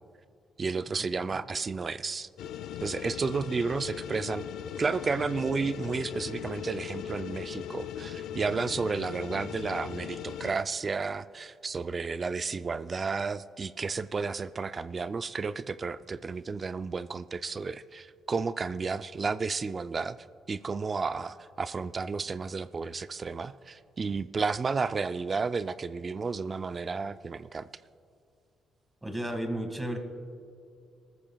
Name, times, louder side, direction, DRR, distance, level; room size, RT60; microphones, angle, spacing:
voice 1, 0.6-2.3 2.8-4.5 4.8-20.2 20.5-27.7, right 4 dB, 35° right, 14 dB, 0.3 m, -32 dB
Machinery Hum, 2.4-10.5, left 9 dB, 85° left, 0.4 m, -39 dB
voice 2, 29.0-30.0, right 1 dB, 10° right, 4 dB, 1.8 m, -33 dB
21.5 x 14.0 x 2.3 m, 2.4 s
cardioid pair, 90°, 0 cm